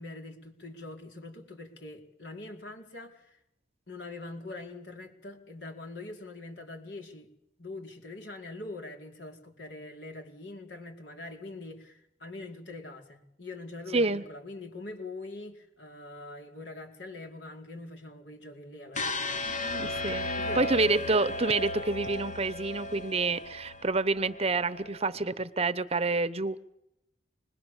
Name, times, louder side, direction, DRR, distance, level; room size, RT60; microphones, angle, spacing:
voice 1, 0.0-3.4 3.9-7.3 7.6-20.9, left 2 dB, 75° left, 4.5 m, -43 dB
voice 2, 13.9-14.3 19.5-20.2 20.5-26.6, right 3 dB, 35° right, 1.0 m, -28 dB
sound 1, 18.9-25.0, left 2 dB, 45° left, 1.1 m, -35 dB
26.5 x 21.0 x 7.2 m
head